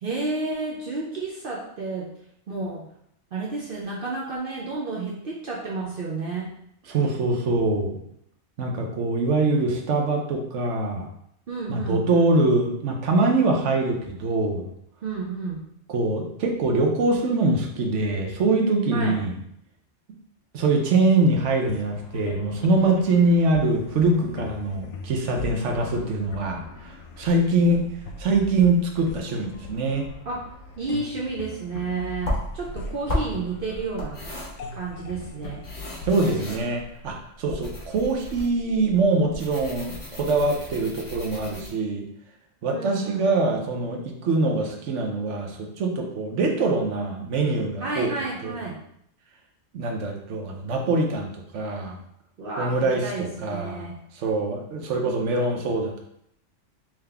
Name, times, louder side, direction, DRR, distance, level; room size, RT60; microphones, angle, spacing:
voice 1, 0.0-2.1 2.5-2.9 3.3-6.5 11.5-12.3 15.0-15.6 18.9-19.2 30.3-30.4 30.8-34.2 34.7-35.6 42.7-43.2 47.8-48.8 52.4-54.0, right 3 dB, 55° right, -4 dB, 0.8 m, -31 dB
voice 2, 6.9-8.0 8.6-11.1 11.7-14.7 15.9-19.3 20.5-27.9 28.2-30.1 36.0-42.1 42.6-48.1 48.4-48.5 49.7-52.0 52.6-56.0, right 2 dB, 80° right, 2 dB, 1.1 m, -23 dB
sound 1, 21.7-37.3, left 4 dB, 90° left, 0.9 m, -40 dB
sound 2, 32.2-41.7, left 1 dB, 35° left, 1.1 m, -34 dB
3.7 x 3.0 x 3.3 m, 0.73 s
omnidirectional pair, 1.2 m